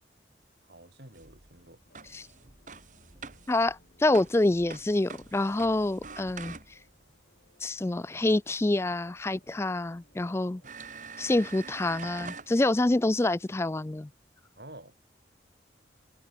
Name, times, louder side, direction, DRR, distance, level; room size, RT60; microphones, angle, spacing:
voice 1, 0.6-1.8 14.5-15.0, right 1 dB, 60° right, 5.2 m, -49 dB
sound 1, 1.1-7.0 9.2-9.3 9.9-10.0 10.6-12.5, right 5 dB, 45° right, 2.3 m, -45 dB
sound 2, 1.8-10.8, left 1 dB, 55° left, 5.1 m, -66 dB
voice 2, 3.5-6.6 7.6-10.6 11.2-14.1, left 2 dB, 15° left, 0.3 m, -27 dB
head